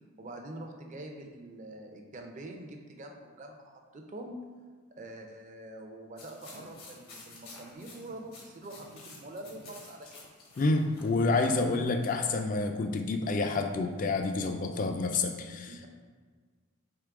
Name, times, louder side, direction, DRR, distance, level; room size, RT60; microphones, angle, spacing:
voice 1, 0.2-4.4 5.0-10.3 15.7-15.9, right 1 dB, 35° right, 3 dB, 0.5 m, -45 dB
sound 1, 6.2-12.3, left 2 dB, 80° left, 1.2 m, -51 dB
voice 2, 10.6-15.9, left 3 dB, 40° left, 6 dB, 0.3 m, -28 dB
3.7 x 3.1 x 4.7 m, 1.5 s
head